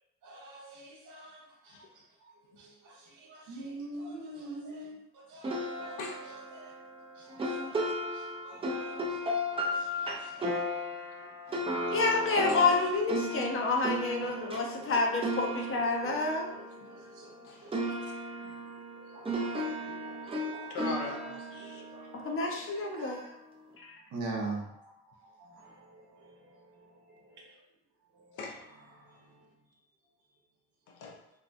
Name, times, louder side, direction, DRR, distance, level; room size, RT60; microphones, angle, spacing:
voice 1, 0.2-1.7 2.6-5.5 5.8-6.0 6.6-6.7 7.2-7.9 8.1-9.2 9.5-10.6 14.3-14.6 16.0-16.2 16.5-17.3 19.1-20.7 21.7-22.1 22.9-23.2 24.1-24.6 25.4-26.4 27.3-27.4 28.2-28.3, right 2 dB, 85° right, -1 dB, 0.7 m, -44 dB
voice 2, 1.7-2.0 6.0-6.2 10.1-10.3 11.5-11.6 11.9-12.0 16.9-17.0 17.4-17.9 20.7-22.0 28.3-28.6 30.9-31.2, left 4 dB, 85° left, 0 dB, 0.6 m, -42 dB
sound 1, 5.4-17.4 17.7-22.9, equal, 20° right, 0.4 m, -35 dB
voice 3, 11.9-16.5 22.1-23.2 23.8-24.0, left 3 dB, 45° left, 1 dB, 0.6 m, -29 dB
2.6 x 2.2 x 2.5 m, 0.85 s
cardioid pair, 90°, 30 cm